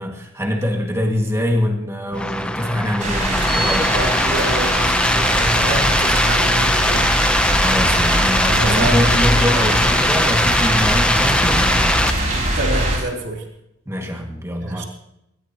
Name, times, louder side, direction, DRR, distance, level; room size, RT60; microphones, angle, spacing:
voice 1, 0.0-3.9 7.6-11.9 13.9-14.8, left 1 dB, 15° right, 2 dB, 2.1 m, -23 dB
sound 1, 2.1-12.1, left 1 dB, 5° left, 0.8 m, -20 dB
sound 2, 2.2-2.3 3.2-12.6, right 2 dB, 85° left, 6.7 m, -36 dB
sound 3, 3.0-13.0, right 1 dB, 35° right, 5.1 m, -22 dB
voice 2, 3.9-7.0 8.5-9.9 12.5-13.4 14.6-14.9, right 2 dB, 55° right, -1 dB, 3.7 m, -27 dB
21.5 x 20.0 x 3.0 m, 0.85 s
head